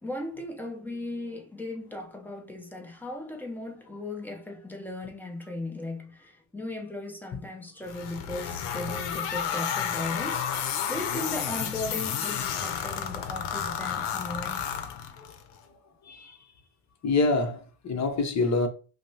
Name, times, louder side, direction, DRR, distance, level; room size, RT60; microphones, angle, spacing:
voice 1, 0.0-14.6, left 2 dB, 5° left, 0.6 m, -37 dB
sound 1, 7.9-15.4, left 8 dB, 80° left, 0.7 m, -31 dB
voice 2, 17.0-18.7, left 3 dB, 40° left, 0.8 m, -26 dB
5.1 x 2.1 x 2.7 m
cardioid pair, 115°, 41 cm